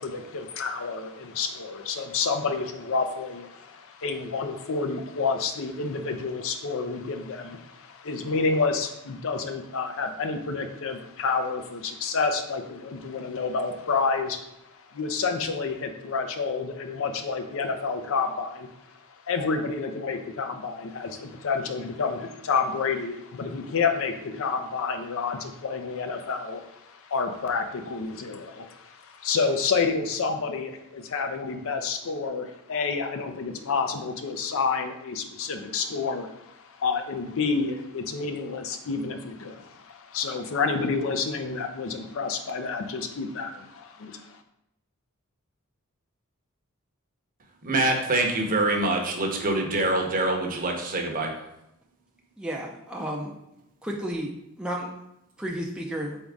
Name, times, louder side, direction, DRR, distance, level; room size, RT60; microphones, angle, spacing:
voice 1, 0.0-14.5 14.8-44.4, left 4 dB, 65° left, 6 dB, 0.5 m, -29 dB
voice 2, 47.6-51.3, right 2 dB, 40° right, 2 dB, 0.8 m, -25 dB
voice 3, 52.4-53.3 53.8-54.3 54.6-54.9 55.4-56.2, equal, 5° right, -2 dB, 0.4 m, -32 dB
4.0 x 3.7 x 3.5 m, 0.83 s
head